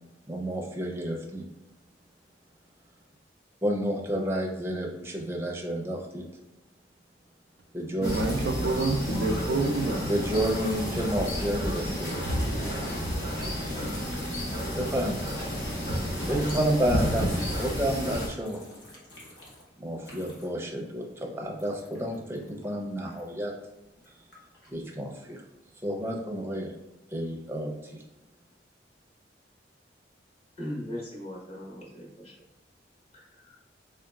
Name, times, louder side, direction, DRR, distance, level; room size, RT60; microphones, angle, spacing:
voice 1, 0.3-1.5 3.6-6.2 7.7-8.1 10.1-12.3 13.5-13.8 14.7-15.3 16.2-18.6 19.8-23.5 24.7-25.4 25.8-26.8 27.1-28.0, right 1 dB, 15° right, 0.5 m, -30 dB
sound 1, 8.0-18.3, equal, 60° left, 1.0 m, -31 dB
voice 2, 8.0-10.1, right 3 dB, 85° right, 0.4 m, -28 dB
sound 2, 10.3-20.7 20.9-23.5 24.0-24.8, left 1 dB, 80° left, 1.1 m, -48 dB
voice 3, 30.6-32.3 33.1-33.6, left 1 dB, 35° left, 1.0 m, -39 dB
3.8 x 3.4 x 2.3 m
head